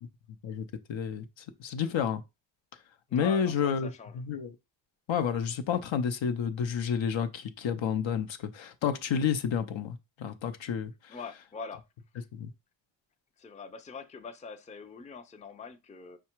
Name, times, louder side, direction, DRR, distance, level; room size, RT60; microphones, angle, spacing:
voice 1, 0.4-2.2 3.1-4.6 5.1-11.2 12.3-12.5, left 7 dB, 75° left, 0.7 m, -30 dB
voice 2, 3.1-4.1 11.1-11.8 13.4-16.2, left 5 dB, 15° left, 0.4 m, -43 dB
4.7 x 2.2 x 4.4 m
cardioid pair, 85°, 46 cm